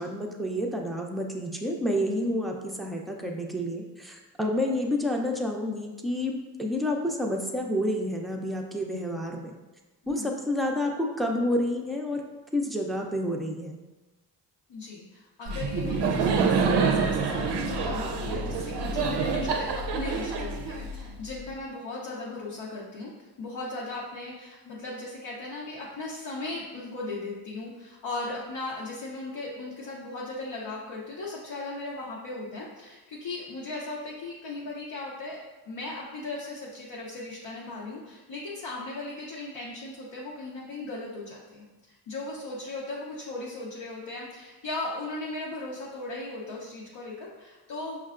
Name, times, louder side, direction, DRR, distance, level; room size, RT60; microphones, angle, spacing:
voice 1, 0.0-9.5 10.1-12.2 12.5-13.8, left 1 dB, ahead, 0 dB, 0.5 m, -29 dB
voice 2, 14.7-23.1 23.4-35.4 35.7-48.0, left 2 dB, 65° left, -5 dB, 0.8 m, -37 dB
Laughter, 15.5-21.3, right 4 dB, 65° right, 0.6 m, -27 dB
5.3 x 2.2 x 2.4 m, 1.2 s
cardioid pair, 50°, 44 cm